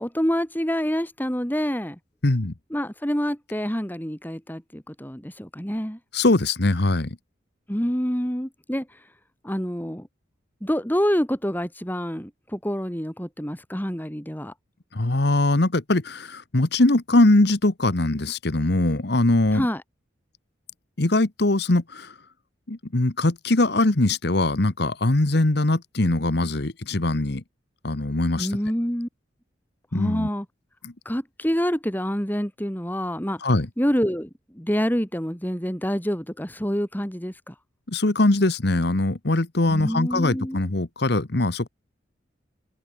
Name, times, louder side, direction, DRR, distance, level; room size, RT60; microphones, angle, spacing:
voice 1, 0.0-2.0 2.7-6.0 7.7-9.0 9.4-10.1 10.6-14.5 19.5-19.8 28.4-29.1 29.9-30.5 31.0-33.4 33.8-34.3 34.5-37.5 39.7-40.6, equal, 10° left, 2.9 m, -27 dB
voice 2, 2.2-2.5 6.1-7.2 14.9-19.7 21.0-22.1 22.7-27.4 27.8-28.6 29.9-30.3 30.8-30.9 33.4-33.7 37.9-41.7, left 2 dB, 60° left, 1.3 m, -21 dB
head